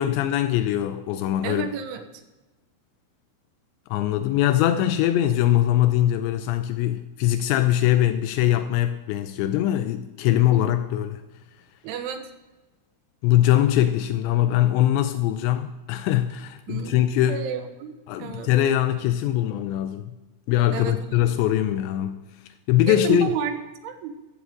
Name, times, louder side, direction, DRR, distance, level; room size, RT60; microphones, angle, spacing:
voice 1, 0.0-1.7 3.9-11.2 13.2-17.4 18.1-20.2 20.5-22.3 22.7-23.3, left 12 dB, 90° left, 9 dB, 2.5 m, -22 dB
voice 2, 1.4-2.0 10.3-10.7 11.8-12.3 16.7-17.9 18.2-18.5 20.7-21.2 22.9-23.6 23.8-24.2, right 7 dB, 75° right, 7 dB, 3.5 m, -31 dB
15.5 x 14.0 x 3.7 m, 1.1 s
omnidirectional pair, 5.8 m